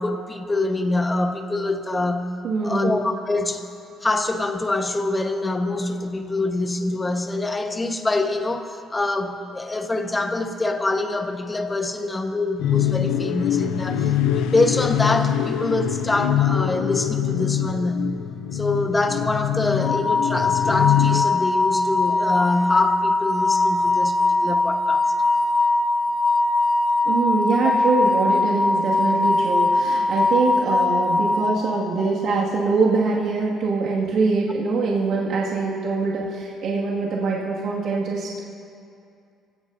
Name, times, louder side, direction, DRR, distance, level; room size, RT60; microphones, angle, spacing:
voice 1, 0.0-2.3 2.6-3.6 4.0-18.1 18.5-25.0 27.6-27.7 30.7-30.8, left 2 dB, 15° left, 5 dB, 1.3 m, -25 dB
voice 2, 2.4-2.9 27.0-38.4, right 4 dB, 70° right, -5 dB, 2.1 m, -23 dB
sound 1, 12.6-21.2, left 10 dB, 85° left, 0.6 m, -23 dB
sound 2, 19.8-32.0, left 2 dB, 50° left, 1.4 m, -21 dB
24.5 x 17.0 x 2.7 m, 2.5 s
cardioid pair, 110°, 0 cm